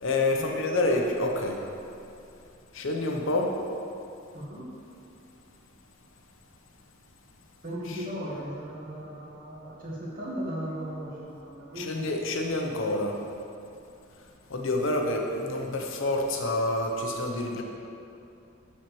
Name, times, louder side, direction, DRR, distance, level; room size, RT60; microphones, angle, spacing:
voice 1, 0.0-1.6 2.7-3.5 11.8-13.1 14.5-17.6, left 2 dB, 65° left, 2 dB, 0.7 m, -27 dB
voice 2, 4.3-4.7 7.6-12.0, equal, 40° right, -6 dB, 1.4 m, -37 dB
7.2 x 6.5 x 3.1 m, 2.8 s
head